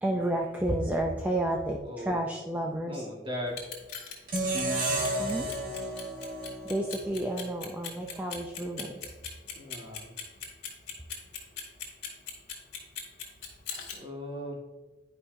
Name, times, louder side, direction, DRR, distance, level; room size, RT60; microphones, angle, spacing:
voice 1, 0.0-3.1 5.2-5.5 6.6-8.9, right 1 dB, 10° right, 0 dB, 0.5 m, -31 dB
voice 2, 1.8-2.2 2.9-3.6 9.5-10.1 14.0-14.6, equal, 30° right, -2 dB, 1.7 m, -38 dB
Clock, 3.5-14.0, left 7 dB, 60° left, 2.3 m, -39 dB
sound 1, 4.3-7.5, right 1 dB, 50° right, 1.7 m, -32 dB
11.0 x 5.5 x 2.6 m, 1.2 s
head